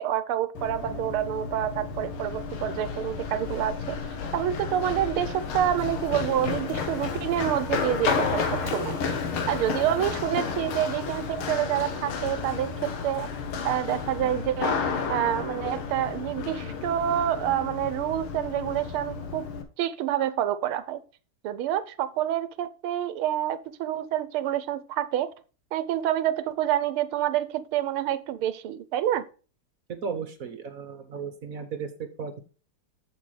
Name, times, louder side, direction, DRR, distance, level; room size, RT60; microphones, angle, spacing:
voice 1, 0.0-4.0 4.3-9.0 9.5-13.3 13.6-14.8 15.1-19.5 19.8-21.0 21.4-25.3 25.7-29.2, right 11 dB, 85° right, 1.6 m, -27 dB
Run, 0.5-19.6, left 5 dB, 85° left, 2.1 m, -32 dB
voice 2, 29.9-32.4, right 6 dB, 50° right, 1.3 m, -35 dB
7.6 x 7.5 x 3.2 m
omnidirectional pair, 2.3 m